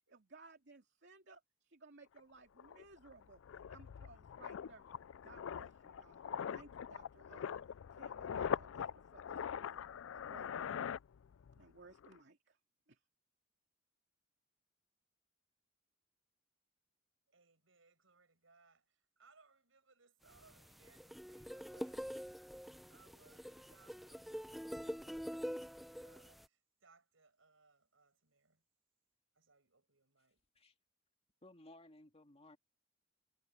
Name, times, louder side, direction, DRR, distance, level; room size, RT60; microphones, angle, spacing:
voice 1, 0.1-4.9 5.2-6.3 6.5-7.5 7.9-9.8 10.1-10.8 11.5-12.6 12.9-13.0, right 3 dB, 60° right, 2.5 m, -60 dB
sound 1, 2.2-2.3 2.6-11.6 11.9-12.2, left 8 dB, 85° left, 0.4 m, -43 dB
voice 2, 17.3-22.1 22.9-28.6 29.3-30.4, right 4 dB, 80° right, 6.1 m, -69 dB
sound 2, 20.3-26.5, equal, ahead, 0.6 m, -46 dB
voice 3, 31.4-32.6, left 1 dB, 30° left, 2.0 m, -59 dB
head